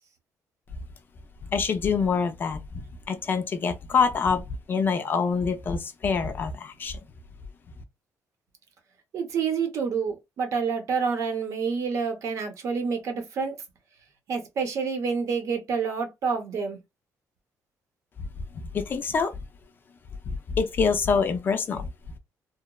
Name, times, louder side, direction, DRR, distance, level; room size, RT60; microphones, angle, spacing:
voice 1, 1.5-2.6 3.1-7.0 18.5-19.3 20.3-21.9, left 5 dB, 35° left, 0.3 m, -25 dB
voice 2, 9.1-13.6 14.3-16.8, right 5 dB, 55° right, 0.7 m, -28 dB
2.9 x 2.0 x 2.2 m
cardioid pair, 175°, 6 cm